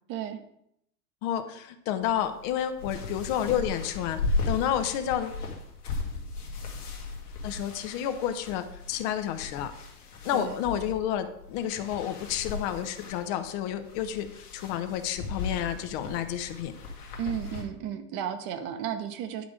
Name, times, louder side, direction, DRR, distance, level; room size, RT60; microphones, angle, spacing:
voice 1, 0.1-0.4 10.3-10.6 17.2-19.4, right 9 dB, 50° right, 8 dB, 1.1 m, -33 dB
voice 2, 1.2-5.4 7.4-9.7 10.2-14.3 14.5-16.7, left 10 dB, 50° left, 9 dB, 0.9 m, -30 dB
sound 1, 2.0-17.6, left 3 dB, 85° left, 1.8 m, -37 dB
10.5 x 3.7 x 5.0 m, 0.76 s
hypercardioid pair, 100°, 44 cm